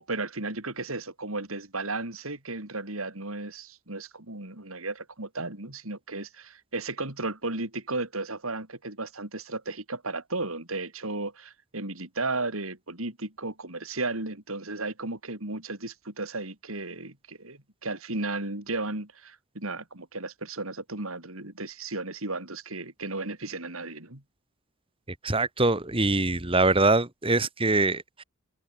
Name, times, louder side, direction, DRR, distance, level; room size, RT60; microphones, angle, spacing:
voice 1, 0.0-24.2, right 2 dB, 80° right, 4.7 m, -34 dB
voice 2, 25.2-28.2, right 2 dB, 25° right, 2.2 m, -23 dB
head